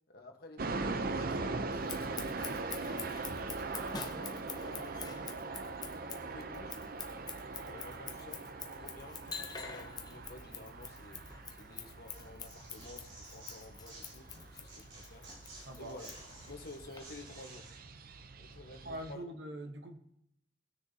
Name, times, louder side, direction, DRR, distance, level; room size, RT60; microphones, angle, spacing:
voice 1, 0.1-3.0 3.5-5.3 6.2-6.8 7.6-11.2 11.5-15.3 15.8-16.1 16.4-17.7 18.4-19.2, left 2 dB, 55° left, 4 dB, 1.2 m, -52 dB
sound 1, 0.6-19.1, right 3 dB, 50° right, 0.6 m, -41 dB
Scissors, 1.7-17.0, left 6 dB, 20° left, 0.7 m, -47 dB
Tearing, 12.1-14.4 14.7-17.8, right 2 dB, 90° right, 3.8 m, -53 dB
voice 2, 15.7-16.0 18.8-20.0, right 1 dB, 70° right, 6 dB, 1.1 m, -43 dB
18.5 x 6.6 x 2.8 m, 0.77 s
head